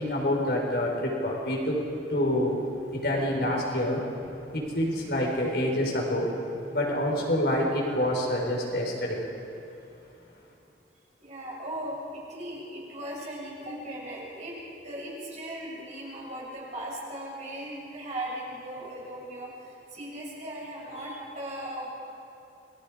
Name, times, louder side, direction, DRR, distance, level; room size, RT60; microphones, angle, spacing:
voice 1, 0.0-1.8 2.1-2.6 2.9-4.0 4.5-6.3 6.7-9.2, left 1 dB, 60° left, -1 dB, 4.5 m, -27 dB
voice 2, 11.2-14.6 14.8-21.9, right 1 dB, 40° right, -5 dB, 6.9 m, -38 dB
29.0 x 21.0 x 5.0 m, 2.8 s
head